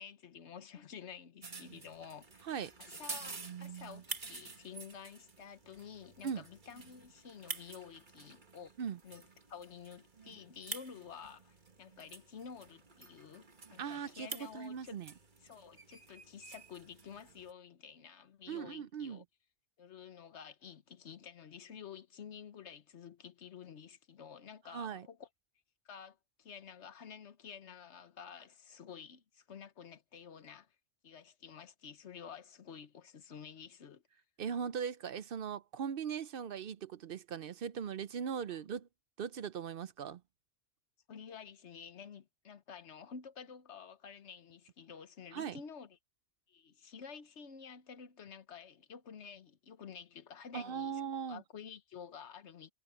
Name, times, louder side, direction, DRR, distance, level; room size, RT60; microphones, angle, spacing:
voice 1, 0.0-2.4 2.8-3.3 3.6-8.7 9.0-9.2 9.5-15.0 15.4-19.2 19.8-25.3 25.8-30.7 31.0-34.0 41.1-46.0 46.5-51.0 51.3-52.7, left 7 dB, 70° left, 1.3 m, -51 dB
sound 1, 1.4-17.5, right 4 dB, 45° right, 1.7 m, -49 dB
voice 2, 13.8-14.3 14.5-15.1 18.5-19.2 24.7-25.1 34.4-38.9 39.2-40.2 45.3-45.6 50.5-51.4, right 7 dB, 60° right, 0.7 m, -39 dB
omnidirectional pair, 1.2 m